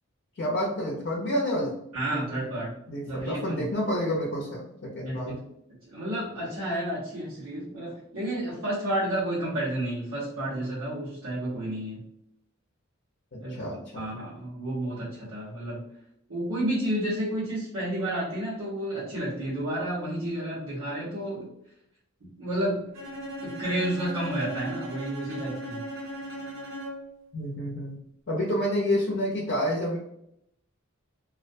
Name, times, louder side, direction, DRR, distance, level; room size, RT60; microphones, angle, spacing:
voice 1, 0.4-1.8 2.1-2.4 2.9-5.4 13.3-14.2 27.3-28.0 28.3-30.0, equal, 55° left, -2 dB, 0.6 m, -29 dB
voice 2, 1.9-2.7 3.0-3.7 5.0-5.2 5.8-12.0 13.4-15.8 16.3-21.5 22.4-22.9 23.4-25.8, right 1 dB, 90° right, -11 dB, 0.9 m, -31 dB
Bowed string instrument, 22.9-27.2, equal, 65° right, 0.6 m, -38 dB
2.3 x 2.1 x 2.5 m, 0.77 s
head